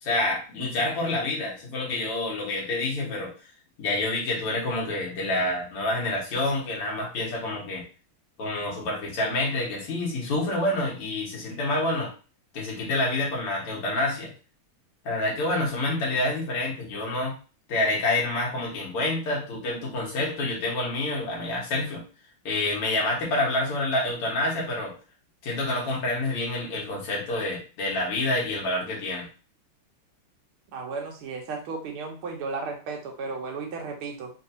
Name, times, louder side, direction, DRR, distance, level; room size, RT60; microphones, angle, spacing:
voice 1, 0.0-3.3 3.8-7.8 8.4-12.1 12.5-14.3 15.0-17.3 17.7-22.0 22.5-24.9 25.4-29.3, left 2 dB, 90° left, -4 dB, 2.4 m, -27 dB
voice 2, 30.7-34.3, right 4 dB, 80° right, 2 dB, 1.8 m, -34 dB
5.2 x 2.6 x 2.7 m, 0.34 s
omnidirectional pair, 2.4 m